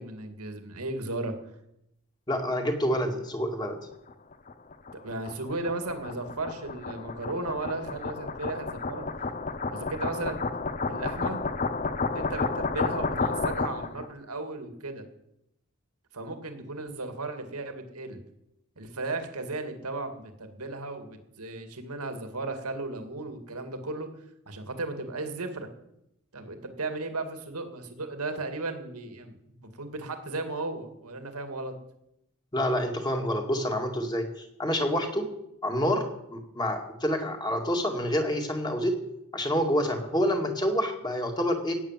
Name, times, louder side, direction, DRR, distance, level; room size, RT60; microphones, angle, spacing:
voice 1, 0.0-1.3 5.0-9.1 9.7-10.5 10.9-11.4 12.1-15.0 16.1-18.2 18.8-24.1 24.5-25.7 26.3-31.7, right 2 dB, 90° right, 7 dB, 2.2 m, -35 dB
voice 2, 2.3-3.8 32.5-34.2 34.6-35.3 35.6-36.0 36.3-39.0 39.3-41.7, equal, 20° left, 3 dB, 2.1 m, -27 dB
sound 1, 4.1-14.1, left 4 dB, 35° left, 0.8 m, -31 dB
17.0 x 8.6 x 7.5 m, 0.83 s
head